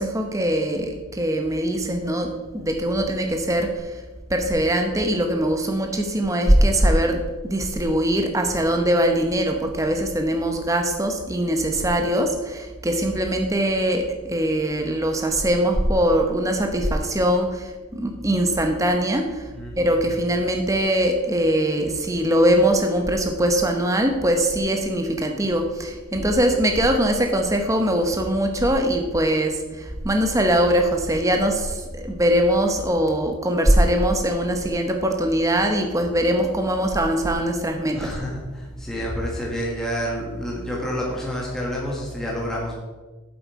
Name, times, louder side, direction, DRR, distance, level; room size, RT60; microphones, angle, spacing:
voice 1, 0.0-3.9 4.3-19.4 19.8-38.1, right 1 dB, 15° right, 4 dB, 0.9 m, -22 dB
voice 2, 37.9-42.7, equal, ahead, -5 dB, 1.5 m, -29 dB
7.8 x 7.8 x 4.7 m, 1.3 s
head